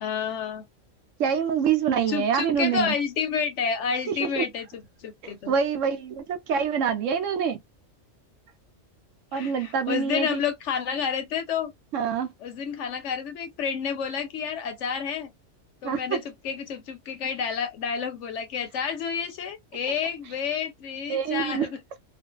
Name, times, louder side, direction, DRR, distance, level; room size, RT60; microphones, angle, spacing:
voice 1, 0.0-0.6 2.1-5.5 9.3-11.7 12.4-15.3 15.8-21.8, left 6 dB, 70° left, 1.0 m, -30 dB
voice 2, 1.2-2.9 4.2-4.4 5.2-7.6 9.3-10.4 11.9-12.3 15.8-16.2 21.1-21.7, right 7 dB, 75° right, 1.0 m, -26 dB
2.5 x 2.4 x 2.3 m
omnidirectional pair, 1.3 m